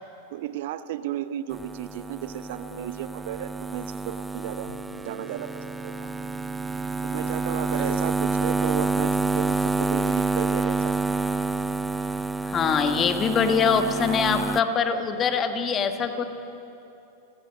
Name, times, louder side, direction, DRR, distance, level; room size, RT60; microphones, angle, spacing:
voice 1, 0.3-4.7 5.0-6.1 7.0-11.0, right 12 dB, 50° right, 13 dB, 0.7 m, -34 dB
sound 1, 1.5-14.6, right 3 dB, 10° right, 0.5 m, -28 dB
sound 2, 4.6-14.8, right 1 dB, 70° left, 4.4 m, -51 dB
voice 2, 12.4-16.2, left 6 dB, 25° left, 8 dB, 1.5 m, -23 dB
29.5 x 16.0 x 6.4 m, 2.8 s
figure-of-eight pair, 90°, 0 cm